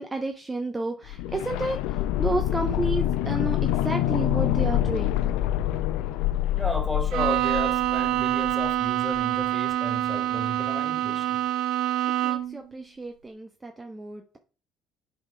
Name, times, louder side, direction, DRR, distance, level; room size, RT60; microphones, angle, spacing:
voice 1, 0.0-5.2 12.2-14.4, right 2 dB, 20° right, 1.0 m, -31 dB
sound 1, 1.1-8.9 9.1-9.2, left 13 dB, 70° left, 0.6 m, -26 dB
voice 2, 6.5-11.4, left 1 dB, 10° left, 2.3 m, -33 dB
Bowed string instrument, 7.1-12.6, right 13 dB, 65° right, 0.6 m, -26 dB
7.5 x 4.3 x 5.4 m
hypercardioid pair, 60°, 0 cm